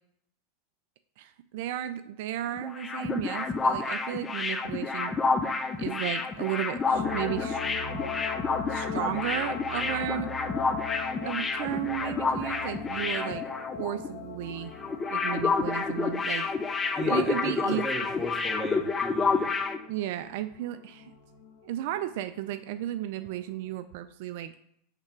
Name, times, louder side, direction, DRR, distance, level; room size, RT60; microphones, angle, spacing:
voice 1, 1.2-5.1 5.8-7.6 8.7-10.3 11.2-13.4 13.8-14.7 15.1-16.5 17.1-17.9 19.9-21.1 21.6-24.5, right 12 dB, 65° right, 11 dB, 0.3 m, -34 dB
sound 1, 2.5-14.1 14.3-14.5 14.8-19.8, left 4 dB, 20° left, 0.5 m, -29 dB
sound 2, 6.9-22.6 23.0-23.1, left 6 dB, 60° left, 1.8 m, -40 dB
sound 3, 9.8-16.0, right 1 dB, 20° right, 2.4 m, -49 dB
voice 2, 16.9-19.5, equal, 5° left, -1 dB, 1.7 m, -35 dB
5.7 x 3.4 x 5.7 m, 0.71 s
hypercardioid pair, 110°, 0 cm